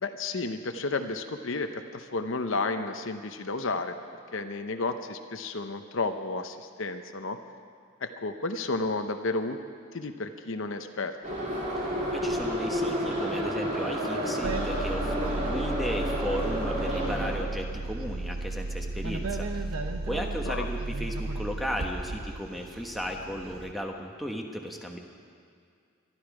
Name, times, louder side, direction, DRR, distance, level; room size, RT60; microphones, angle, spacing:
voice 1, 0.0-4.0 4.3-7.4 8.0-9.6 9.9-11.2 20.4-20.7, left 3 dB, 65° left, 7 dB, 0.8 m, -32 dB
Subway metro underground, 11.2-17.3, equal, 35° right, 3.2 m, -30 dB
voice 2, 11.8-19.6 20.1-25.0, equal, ahead, 2 dB, 1.2 m, -35 dB
sound 1, 14.4-23.7, right 2 dB, 85° right, 1.0 m, -34 dB
22.0 x 12.5 x 4.9 m, 2.3 s
head